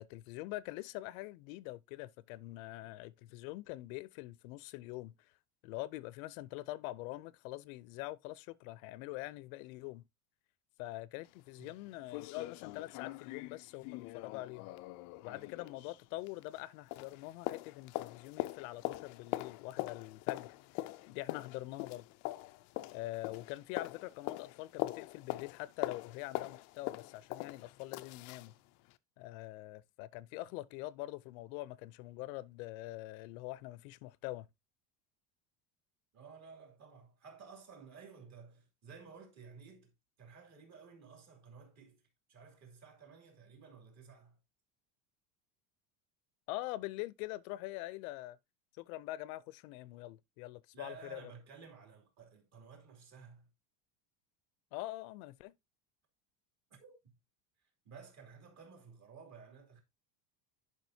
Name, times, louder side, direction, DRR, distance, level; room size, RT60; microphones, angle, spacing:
voice 1, 0.0-5.3 5.6-10.0 10.8-14.7 15.2-22.0 22.9-28.5 29.2-34.5 46.5-48.4 48.8-51.2 54.7-55.5, left 18 dB, 80° left, 0.6 m, -44 dB
sound 1, 11.2-11.3 11.7-11.8 12.1-16.7 16.9-28.5 28.9-29.0, left 18 dB, 45° left, 0.4 m, -42 dB
voice 2, 36.1-39.9 40.2-42.0 42.3-44.4 50.7-53.5 56.8-57.1 57.6-59.8, right 5 dB, 40° right, 2.8 m, -54 dB
10.5 x 5.3 x 2.7 m
cardioid pair, 160°, 41 cm